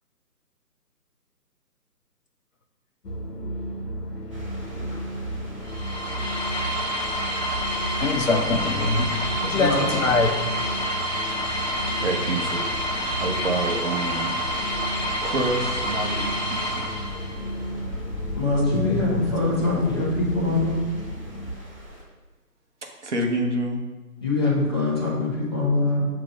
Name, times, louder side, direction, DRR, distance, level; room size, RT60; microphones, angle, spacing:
sound 1, 3.0-21.5, equal, 70° left, 1.0 m, -34 dB
sound 2, 4.3-22.0, left 1 dB, 20° right, 0.8 m, -40 dB
sound 3, 5.6-17.5, equal, 35° left, 1.3 m, -28 dB
voice 1, 8.0-9.1 9.4-10.3 18.7-19.2 25.8-25.9, left 3 dB, 50° left, 3 dB, 0.7 m, -24 dB
voice 2, 9.5-9.9 18.4-20.8 24.2-26.1, left 2 dB, 15° left, -7 dB, 0.8 m, -23 dB
voice 3, 12.0-12.6 13.1-14.3 14.9-16.9 22.8-23.8, right 2 dB, 45° right, 1 dB, 0.9 m, -28 dB
7.3 x 2.9 x 5.1 m, 1.2 s
figure-of-eight pair, 155°, 49 cm